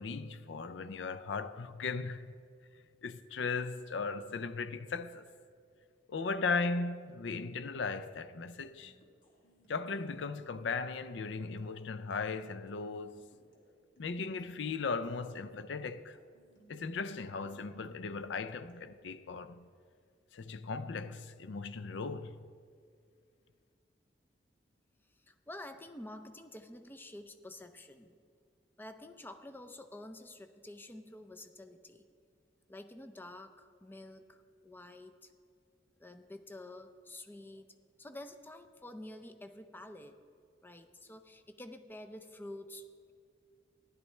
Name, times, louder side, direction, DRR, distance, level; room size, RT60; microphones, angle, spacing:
voice 1, 0.0-2.3 3.0-5.2 6.1-8.9 9.7-13.2 14.0-16.2 16.7-19.7 20.3-22.4, left 4 dB, 80° left, 0.5 m, -37 dB
sound 1, 8.7-19.0, equal, 50° left, 2.2 m, -66 dB
voice 2, 25.3-28.1 28.8-32.0 32.7-35.3 36.0-37.7 38.0-40.1 40.6-43.1, left 1 dB, 10° left, 0.5 m, -49 dB
15.0 x 11.0 x 3.2 m
head